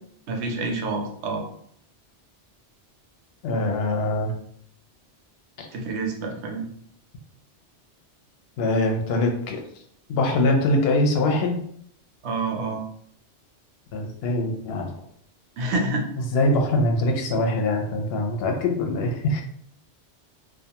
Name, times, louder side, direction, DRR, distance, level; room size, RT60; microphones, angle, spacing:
voice 1, 0.3-1.4 5.7-6.7 12.2-12.8 15.6-16.1, right 3 dB, 75° right, 2 dB, 0.9 m, -27 dB
voice 2, 3.4-4.3 5.6-5.7 8.6-9.6 10.1-11.6 13.9-14.9 16.3-19.4, left 1 dB, 65° left, 2 dB, 0.7 m, -23 dB
2.3 x 2.2 x 2.8 m, 0.67 s
omnidirectional pair, 1.2 m